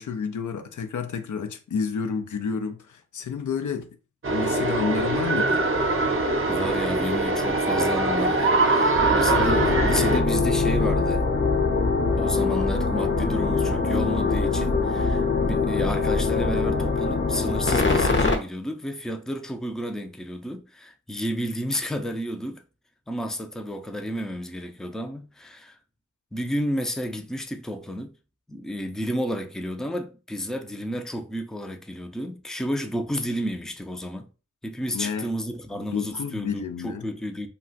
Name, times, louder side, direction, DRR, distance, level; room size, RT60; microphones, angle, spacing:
voice 1, 0.0-3.9 4.3-5.6 34.9-35.3 35.7-37.1, left 6 dB, 75° left, 0.5 m, -30 dB
sound 1, 4.2-10.2, right 2 dB, 40° right, 0.7 m, -23 dB
voice 2, 6.5-11.3 12.2-22.6 23.1-25.8 26.3-28.1 28.5-34.3 34.6-37.5, equal, ahead, 0.5 m, -31 dB
sound 2, 9.3-18.4, left 4 dB, 40° left, 0.7 m, -23 dB
2.3 x 2.3 x 3.8 m
cardioid pair, 45°, 31 cm